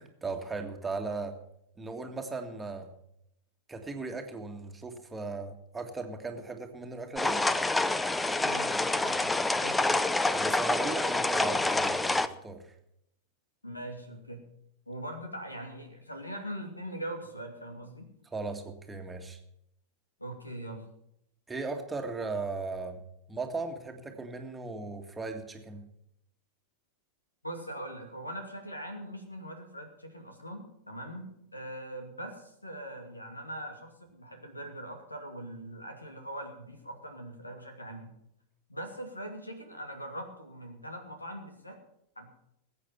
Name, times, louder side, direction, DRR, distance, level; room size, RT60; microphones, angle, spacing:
voice 1, 0.0-1.4 1.8-2.9 3.7-7.5 10.3-12.8 18.3-19.4 21.5-23.0 23.3-25.9, right 3 dB, 10° right, 4 dB, 1.9 m, -37 dB
sound 1, 7.2-12.3, left 2 dB, 10° left, 0.7 m, -27 dB
voice 2, 8.4-9.3 9.6-9.9 13.6-14.4 14.9-18.1 20.2-20.8 27.4-38.2 38.7-41.8 42.2-42.3, right 1 dB, 85° left, 5 dB, 2.5 m, -41 dB
20.0 x 8.4 x 5.8 m, 0.76 s
figure-of-eight pair, 90°, 0 cm